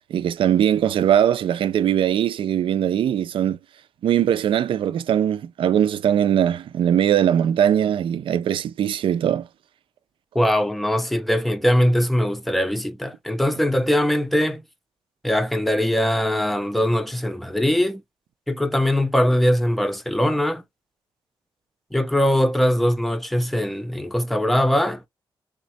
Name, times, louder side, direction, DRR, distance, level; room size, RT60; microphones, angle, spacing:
voice 1, 0.0-3.6 4.0-9.5, right 10 dB, 75° right, 0.4 m, -20 dB
voice 2, 10.3-14.6 15.2-18.0 18.5-20.6 21.9-25.1, equal, ahead, 0.4 m, -21 dB
3.6 x 2.1 x 4.1 m
wide cardioid pair, 170°, 9 cm